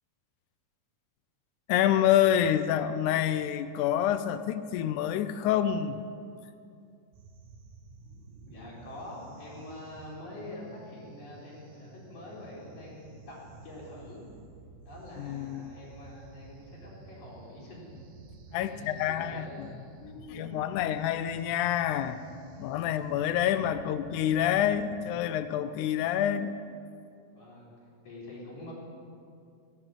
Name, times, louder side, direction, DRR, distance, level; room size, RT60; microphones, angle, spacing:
voice 1, 1.7-6.0 15.2-15.7 18.5-19.5 20.4-22.2 22.6-26.5, left 10 dB, 85° left, 12 dB, 2.0 m, -27 dB
sound 1, 7.1-25.7, right 3 dB, 70° right, 2.4 m, -51 dB
voice 2, 8.5-14.2 14.8-17.9 18.7-19.6 19.9-20.6 22.0-22.7 27.3-28.7, left 1 dB, 70° left, -5 dB, 5.0 m, -46 dB
16.5 x 6.5 x 8.0 m, 2.4 s
omnidirectional pair, 3.5 m